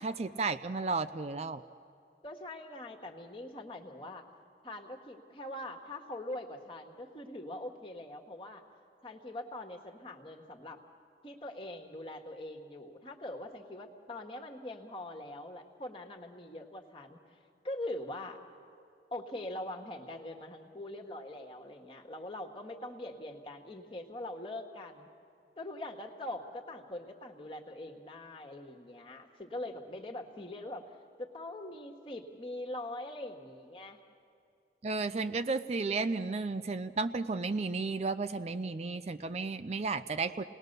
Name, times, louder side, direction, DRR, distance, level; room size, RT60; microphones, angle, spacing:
voice 1, 0.0-1.6 34.8-40.4, right 3 dB, 35° right, 11 dB, 0.4 m, -33 dB
voice 2, 2.2-4.3 4.6-8.6 9.0-10.8 11.2-17.2 17.6-18.4 19.1-25.1 25.6-30.9 31.2-34.0, left 1 dB, 30° left, 2 dB, 1.6 m, -42 dB
28.5 x 19.5 x 6.7 m, 2.6 s
head